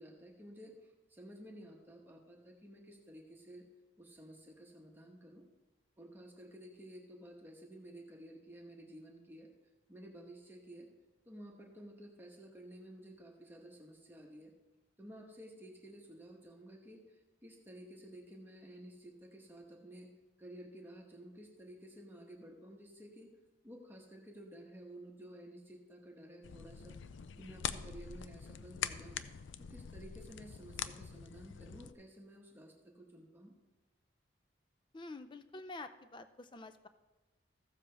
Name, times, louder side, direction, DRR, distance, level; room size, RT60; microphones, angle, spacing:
voice 1, 0.0-3.6 4.0-5.5 6.0-9.5 9.9-10.9 11.3-14.5 15.0-20.1 20.4-23.3 23.6-27.0 27.4-29.2 29.7-33.5, right 1 dB, 10° right, 0 dB, 1.1 m, -53 dB
sound 1, 26.4-31.9, left 8 dB, 85° left, 0.4 m, -44 dB
voice 2, 34.9-36.9, left 2 dB, 25° left, 10 dB, 0.5 m, -48 dB
14.5 x 7.3 x 3.4 m, 1.1 s
head